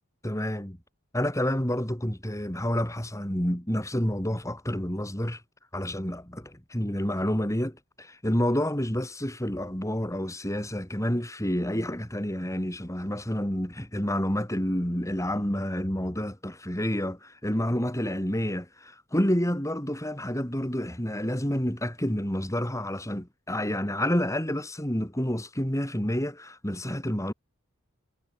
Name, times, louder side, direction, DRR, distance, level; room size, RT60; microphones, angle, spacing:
voice 1, 0.2-0.8 1.1-5.4 5.7-27.3, equal, 15° left, 4.7 m, -29 dB
head